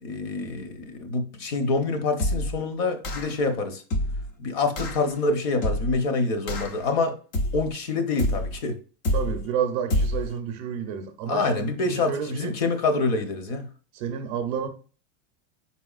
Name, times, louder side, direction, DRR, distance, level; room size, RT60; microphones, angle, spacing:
voice 1, 0.0-3.8 4.4-7.2 7.5-8.8 11.3-13.7, left 3 dB, 50° left, 0.9 m, -26 dB
sound 1, 2.2-2.6 3.0-3.4 3.9-4.3 4.8-5.0 5.6-6.0 6.5-6.9 7.3-7.7 8.2-8.6 9.0-9.5 9.9-10.3, left 1 dB, 30° left, 0.4 m, -27 dB
voice 2, 9.1-12.6 13.9-14.7, right 7 dB, 40° right, 0.6 m, -30 dB
4.4 x 4.2 x 2.4 m
supercardioid pair, 165°, 39 cm